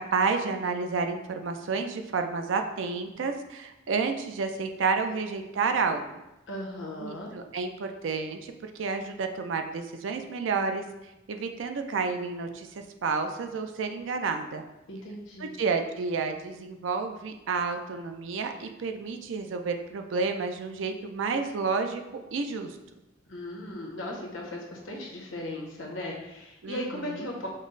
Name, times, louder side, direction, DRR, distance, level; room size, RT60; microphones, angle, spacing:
voice 1, 0.0-6.0 7.0-10.8 11.3-14.6 15.4-22.0 22.3-22.8 26.6-27.3, right 4 dB, 75° right, 6 dB, 0.4 m, -30 dB
voice 2, 6.5-7.3 14.9-15.6 23.3-27.5, left 1 dB, 90° left, -1 dB, 0.9 m, -37 dB
5.2 x 2.1 x 3.9 m, 0.95 s
head